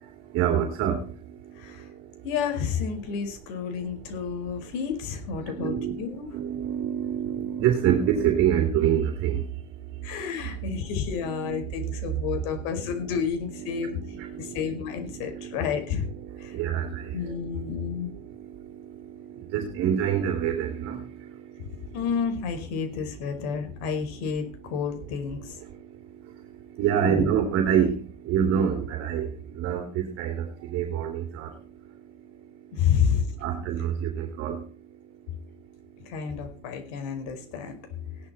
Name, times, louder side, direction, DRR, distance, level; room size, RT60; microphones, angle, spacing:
voice 1, 0.0-2.2 3.5-3.9 4.3-4.7 5.4-9.5 9.9-10.8 11.2-12.2 12.9-13.2 13.5-22.0 23.1-24.0 24.3-24.4 24.6-32.9 33.4-34.7, right 9 dB, 45° right, 4 dB, 3.2 m, -29 dB
voice 2, 2.2-6.3 10.0-14.0 14.3-16.1 16.4-16.6 17.1-18.1 21.9-25.5 27.0-27.3 32.7-33.2 36.0-37.7, left 7 dB, 60° left, 6 dB, 5.1 m, -30 dB
17.0 x 12.0 x 4.4 m, 0.36 s
supercardioid pair, 145°, 31 cm